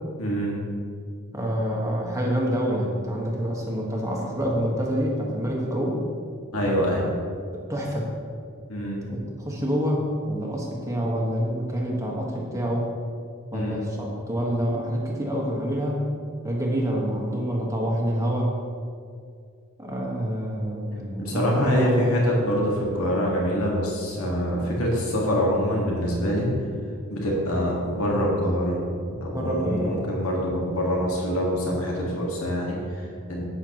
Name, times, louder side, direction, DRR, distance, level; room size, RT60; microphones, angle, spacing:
voice 1, 0.2-0.6 6.5-7.1 8.7-9.0 13.5-13.8 21.2-26.5 27.1-28.8 29.1-33.5, equal, 70° left, -2 dB, 1.9 m, -25 dB
voice 2, 1.3-6.0 7.7-8.1 9.1-12.9 13.5-16.0 16.4-18.5 19.8-22.1 29.3-30.1, equal, 15° right, -2 dB, 1.6 m, -27 dB
11.5 x 9.0 x 3.1 m, 2.2 s
head